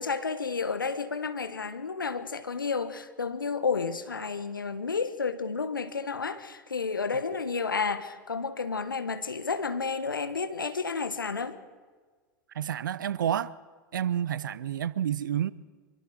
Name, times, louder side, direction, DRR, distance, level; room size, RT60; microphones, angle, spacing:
voice 1, 0.0-11.6, left 5 dB, 85° left, 1.4 m, -31 dB
voice 2, 12.5-13.5 13.9-15.5, right 10 dB, 70° right, 0.8 m, -29 dB
25.5 x 24.0 x 4.7 m
figure-of-eight pair, 90°, 11 cm